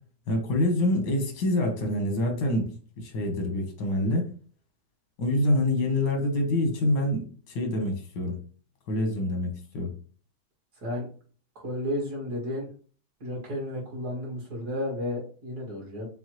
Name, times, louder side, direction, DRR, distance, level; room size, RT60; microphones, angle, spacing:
voice 1, 0.3-2.7 3.0-4.3 5.2-8.4 8.9-9.9, left 1 dB, 90° left, 3 dB, 1.7 m, -26 dB
voice 2, 11.6-12.7 13.2-16.1, left 1 dB, 65° right, -2 dB, 2.1 m, -32 dB
6.1 x 2.2 x 3.0 m, 0.41 s
omnidirectional pair, 1.8 m